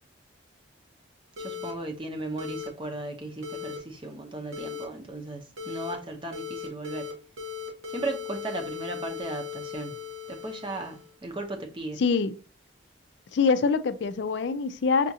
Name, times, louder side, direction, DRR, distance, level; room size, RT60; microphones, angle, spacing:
voice 1, 1.4-7.2 7.9-10.0 10.3-12.0, right 2 dB, 25° right, 0.7 m, -36 dB
sound 1, 1.4-1.7 2.4-2.7 3.4-3.8 4.5-4.8 5.6-5.9 6.3-7.1 7.4-11.1, left 7 dB, 80° right, 1.1 m, -38 dB
voice 2, 12.0-12.3 13.3-15.1, left 5 dB, 55° left, 0.4 m, -24 dB
5.8 x 2.4 x 2.7 m
head